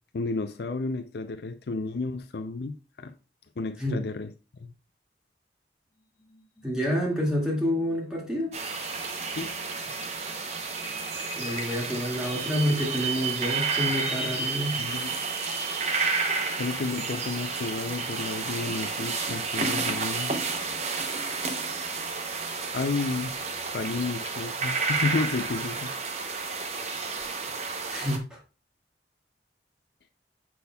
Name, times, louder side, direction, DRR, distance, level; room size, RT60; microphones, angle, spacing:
voice 1, 0.1-3.1 3.6-4.3 4.6-4.7 9.3-9.5 14.8-15.2 16.6-20.3 22.7-23.3 23.7-25.9, left 3 dB, 65° left, 0.5 m, -31 dB
sound 1, 6.2-24.3, right 5 dB, 20° left, 1.8 m, -39 dB
voice 2, 6.6-8.5 11.4-14.8 27.9-28.4, equal, 5° right, 2.0 m, -28 dB
sound 2, 8.5-28.2, right 4 dB, 35° right, 0.7 m, -31 dB
6.9 x 6.1 x 2.3 m
head